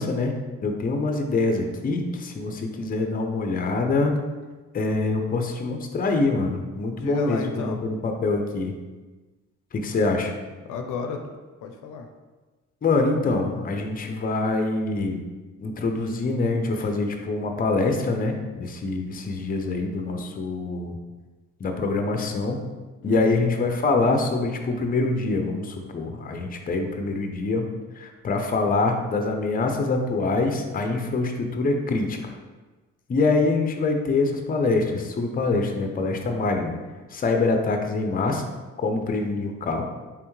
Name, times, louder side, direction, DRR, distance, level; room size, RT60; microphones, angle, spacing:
voice 1, 0.0-4.1 4.7-8.7 9.7-10.3 12.8-15.2 15.6-21.0 21.6-22.6 23.0-27.6 28.0-32.3 33.1-36.7 37.1-38.4 38.8-39.8, left 3 dB, 30° left, 4 dB, 0.5 m, -25 dB
voice 2, 6.9-7.8 10.6-11.3 11.6-12.1 16.8-16.9 23.0-23.4, left 5 dB, 85° left, 4 dB, 0.5 m, -33 dB
3.5 x 3.4 x 3.1 m, 1.2 s
cardioid pair, 90°, 30 cm